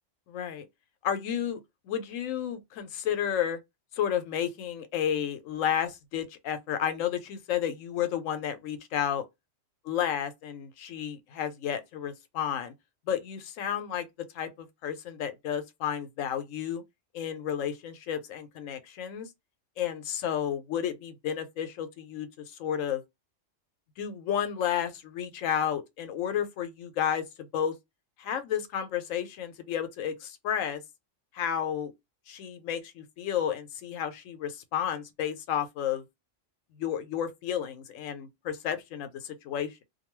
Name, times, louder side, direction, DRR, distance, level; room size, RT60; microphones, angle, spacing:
voice 1, 0.3-0.7 1.0-1.6 1.8-3.6 3.9-9.2 9.8-12.7 13.1-14.1 14.3-16.8 17.1-19.3 19.8-22.3 22.6-23.0 24.0-27.2 27.5-27.7 28.2-30.8 31.3-31.9 32.3-36.0 36.8-39.8, left 9 dB, 90° left, 1.0 m, -31 dB
2.6 x 2.2 x 3.0 m
omnidirectional pair, 1.3 m